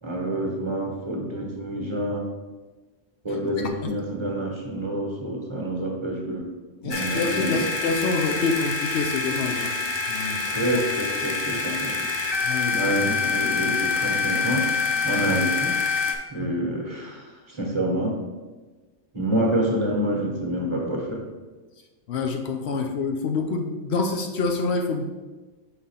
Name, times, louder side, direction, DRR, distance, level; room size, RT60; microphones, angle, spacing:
voice 1, 0.0-2.3 3.2-6.5 6.8-7.7 10.5-12.0 12.7-14.7 15.0-15.8 16.3-18.2 19.1-21.3, right 1 dB, 25° right, 0 dB, 1.1 m, -27 dB
voice 2, 6.8-9.7 10.1-10.6 12.4-12.8 16.4-16.6 22.1-25.0, left 4 dB, 65° left, 3 dB, 0.9 m, -27 dB
sound 1, 6.9-16.1, left 4 dB, 35° left, 0.4 m, -26 dB
5.9 x 3.7 x 5.5 m, 1.3 s
omnidirectional pair, 1.2 m